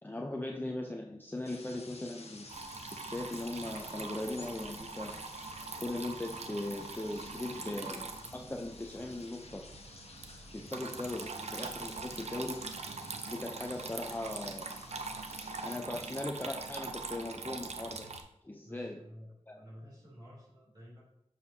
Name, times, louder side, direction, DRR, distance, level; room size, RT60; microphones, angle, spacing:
voice 1, 0.0-2.5 3.0-5.2 5.8-9.6 10.5-12.6 13.3-14.7 15.6-18.1 18.4-19.0 19.5-19.6, left 1 dB, 15° left, 1 dB, 0.6 m, -39 dB
sound 1, 1.3-15.8, left 3 dB, 70° left, 1.1 m, -53 dB
Water tap faucet / Trickle dribble, 2.5-18.2, right 4 dB, 75° right, 0.6 m, -43 dB
voice 2, 18.6-21.0, equal, 40° right, -6 dB, 2.8 m, -52 dB
6.9 x 6.5 x 2.8 m, 0.77 s
wide cardioid pair, 55°, 11 cm